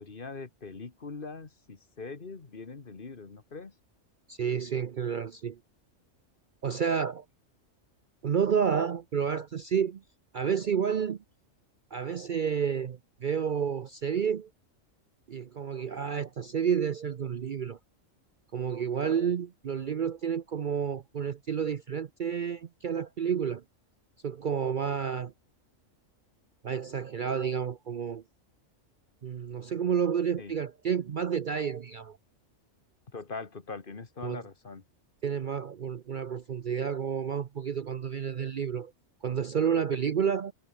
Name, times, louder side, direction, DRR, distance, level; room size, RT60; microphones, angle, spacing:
voice 1, 0.0-3.7 30.4-30.5 33.1-34.8, left 4 dB, 45° left, 1.7 m, -42 dB
voice 2, 4.3-5.6 6.6-7.2 8.2-10.0 10.3-11.2 11.9-14.5 15.3-17.8 18.5-23.6 24.2-25.3 26.6-28.2 29.2-32.2 34.2-34.4 35.2-38.9 39.2-40.5, right 7 dB, 50° right, 0.7 m, -30 dB
omnidirectional pair, 1.3 m